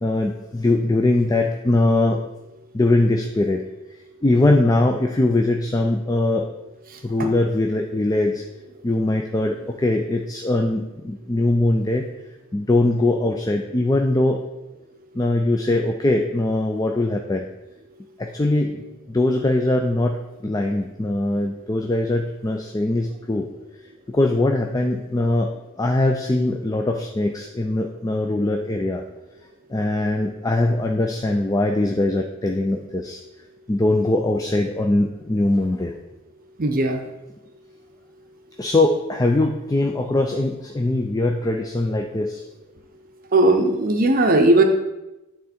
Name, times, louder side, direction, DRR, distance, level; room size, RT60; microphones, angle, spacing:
voice 1, 0.0-2.2 2.7-3.6 4.2-6.5 7.0-8.4 8.8-12.1 12.5-14.4 15.1-17.5 18.2-18.8 19.1-23.5 24.1-25.5 25.8-29.0 29.7-33.2 33.7-35.9 38.6-42.4, left 2 dB, 15° left, 3 dB, 0.4 m, -21 dB
voice 2, 36.6-37.0 43.3-44.6, right 2 dB, 40° right, 4 dB, 0.6 m, -17 dB
9.3 x 3.7 x 4.3 m, 0.99 s
head